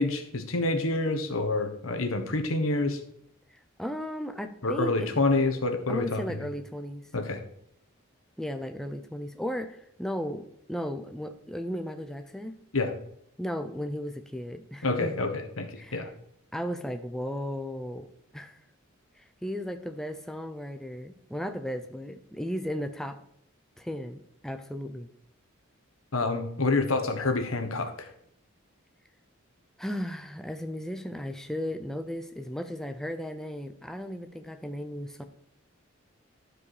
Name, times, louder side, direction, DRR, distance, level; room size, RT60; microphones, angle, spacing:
voice 1, 0.0-3.0 4.6-6.4 7.1-7.4 12.7-12.9 14.8-15.7 15.9-16.1 26.1-28.1, left 2 dB, 80° left, 6 dB, 1.4 m, -27 dB
voice 2, 3.5-5.1 5.9-7.0 8.4-12.5 13.4-15.2 15.8-16.1 16.5-18.6 19.2-23.2 23.8-25.1 29.8-35.2, equal, ahead, 7 dB, 0.5 m, -35 dB
12.5 x 4.8 x 4.9 m, 0.71 s
head